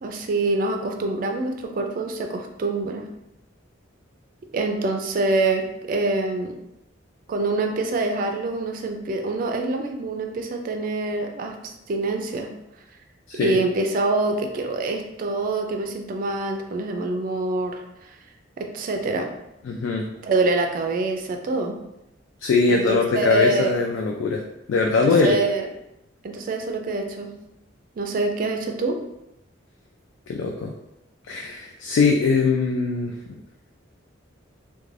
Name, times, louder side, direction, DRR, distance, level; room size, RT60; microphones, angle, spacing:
voice 1, 0.0-3.1 4.5-6.6 7.3-11.6 11.9-12.5 13.3-18.1 18.6-19.3 20.2-21.8 22.7-23.8 25.0-25.7 26.2-27.3 28.0-29.0, right 2 dB, 45° right, 4 dB, 0.3 m, -25 dB
voice 2, 19.6-20.1 22.4-24.4 24.7-25.4 30.3-30.7 31.3-33.4, left 4 dB, 80° left, 1 dB, 0.3 m, -21 dB
2.4 x 2.2 x 3.1 m, 0.87 s
head